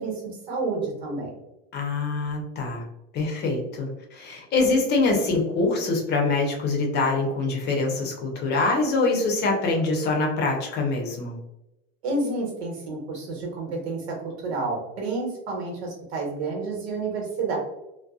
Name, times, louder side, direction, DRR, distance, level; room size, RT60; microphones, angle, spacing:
voice 1, 0.0-1.4 12.0-17.6, right 3 dB, 85° right, -1 dB, 1.2 m, -30 dB
voice 2, 1.7-2.8 3.1-11.4, left 3 dB, 35° left, 0 dB, 0.6 m, -24 dB
2.6 x 2.2 x 2.3 m, 0.92 s
supercardioid pair, 140°, 32 cm